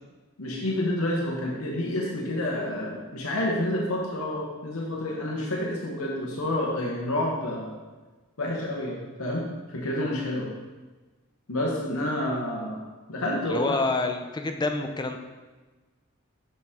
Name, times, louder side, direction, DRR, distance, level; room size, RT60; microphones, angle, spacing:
voice 1, 0.4-7.7 8.4-10.5 11.5-12.8 13.1-13.8, left 1 dB, 80° left, -2 dB, 1.0 m, -29 dB
voice 2, 13.4-15.2, left 3 dB, 20° left, 5 dB, 0.4 m, -27 dB
6.7 x 5.9 x 3.6 m, 1.2 s
head